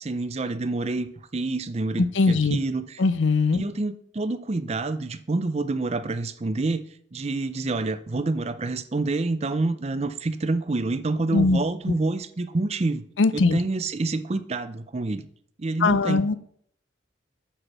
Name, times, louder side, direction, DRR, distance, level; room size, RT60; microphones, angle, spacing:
voice 1, 0.0-3.0 3.5-13.0 13.3-15.2 15.6-16.3, right 3 dB, 35° right, 0.5 m, -28 dB
voice 2, 2.2-2.6 3.0-3.6 11.3-11.6 13.2-13.6 15.8-16.4, left 3 dB, 75° left, 0.5 m, -20 dB
8.0 x 6.0 x 6.1 m
head